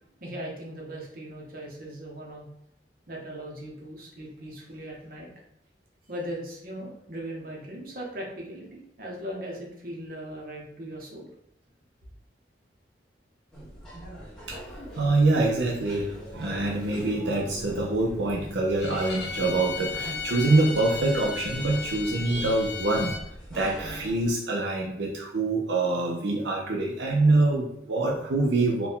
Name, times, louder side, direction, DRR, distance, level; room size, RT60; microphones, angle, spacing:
voice 1, 0.2-2.5 3.1-5.3 6.1-11.3, equal, 55° right, -2 dB, 1.2 m, -38 dB
sound 1, 13.5-24.3, right 1 dB, 5° left, 1.2 m, -42 dB
voice 2, 15.0-23.2 23.5-28.9, right 2 dB, 85° right, -1 dB, 0.6 m, -25 dB
Bowed string instrument, 18.8-23.2, left 5 dB, 75° left, 0.7 m, -35 dB
4.4 x 2.7 x 3.5 m, 0.77 s
head